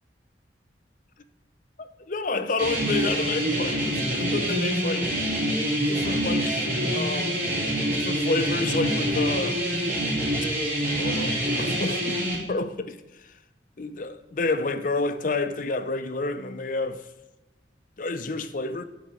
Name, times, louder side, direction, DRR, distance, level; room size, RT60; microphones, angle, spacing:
voice 1, 1.8-5.1 5.9-7.4 7.9-9.6 11.0-13.3 13.8-17.1 18.0-18.8, left 3 dB, 45° left, 0.6 m, -29 dB
sound 1, 2.6-12.4, equal, 50° right, 3.2 m, -26 dB
11.0 x 4.2 x 7.9 m
head